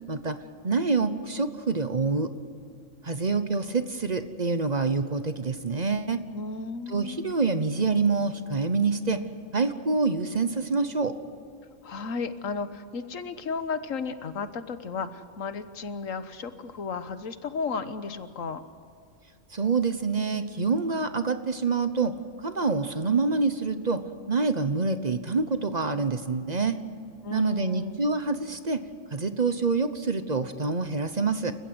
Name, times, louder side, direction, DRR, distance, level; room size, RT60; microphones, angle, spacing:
voice 1, 0.6-2.3 3.0-6.2 6.9-9.2 9.5-11.1 19.5-22.1 22.4-24.0 24.3-26.8 27.3-28.8 29.1-31.5, right 4 dB, 35° right, 10 dB, 1.0 m, -26 dB
voice 2, 6.3-7.3 11.8-18.6 27.2-28.0, left 5 dB, 85° left, 11 dB, 1.6 m, -34 dB
29.0 x 15.5 x 7.8 m, 2.5 s
omnidirectional pair, 1.3 m